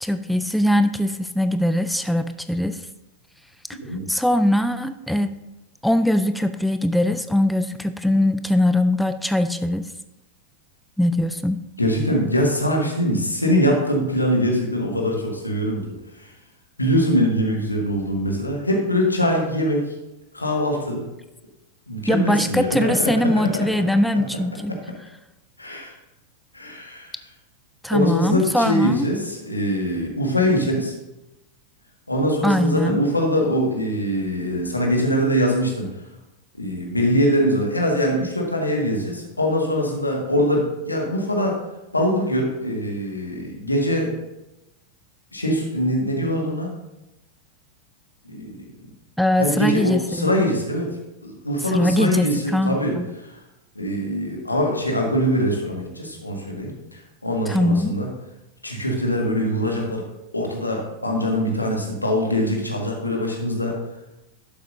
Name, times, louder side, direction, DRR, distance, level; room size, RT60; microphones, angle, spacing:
voice 1, 0.0-2.8 4.1-5.4 5.8-9.9 11.0-11.6 22.1-24.7 27.8-29.1 32.4-33.0 49.2-50.3 51.7-53.1 57.5-57.9, left 1 dB, ahead, 10 dB, 0.4 m, -21 dB
voice 2, 11.8-15.8 16.2-16.3 16.8-19.9 20.3-21.0 21.9-23.7 25.6-25.9 26.5-27.1 27.9-30.9 32.1-35.9 36.6-41.6 41.9-44.2 45.3-46.7 48.2-48.7 49.4-51.0 51.2-53.0 53.3-53.4 53.8-58.1 58.6-60.1 60.3-63.8, equal, 85° left, 0 dB, 1.8 m, -23 dB
11.5 x 7.5 x 2.7 m, 0.95 s
figure-of-eight pair, 90°, 0 cm